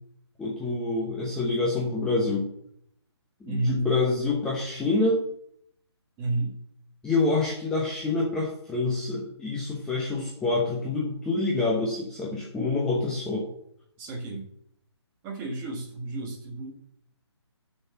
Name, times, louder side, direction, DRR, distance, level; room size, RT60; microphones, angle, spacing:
voice 1, 0.4-2.4 3.4-5.2 7.0-13.5, left 3 dB, 5° left, -4 dB, 0.8 m, -27 dB
voice 2, 3.5-3.8 6.2-6.6 14.0-14.5 15.2-16.7, right 2 dB, 15° right, -1 dB, 1.6 m, -31 dB
7.1 x 6.4 x 7.0 m, 0.68 s
hypercardioid pair, 165°, 15 cm